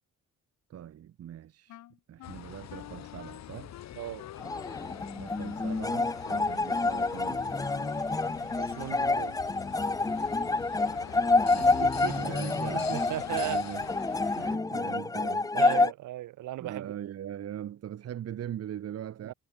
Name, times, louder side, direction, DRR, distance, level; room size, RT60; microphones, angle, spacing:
voice 1, 0.7-1.7 2.1-3.7 5.2-7.4 10.3-10.4 11.5-11.8 12.1-13.0 13.4-13.9 14.4-15.5 16.6-19.3, right 10 dB, 55° right, 1.0 m, -41 dB
Wind instrument woodwind instrument, 1.7-9.2, left 13 dB, 80° left, 6.6 m, -50 dB
sound 1, 2.2-14.6, left 11 dB, 65° left, 1.2 m, -45 dB
voice 2, 3.9-4.3 8.6-9.4 11.6-12.2 12.7-13.6 15.5-16.9 19.2-19.3, right 15 dB, 85° right, 2.6 m, -36 dB
sound 2, 4.4-15.9, left 3 dB, 10° left, 0.6 m, -28 dB
cardioid pair, 90°, 30 cm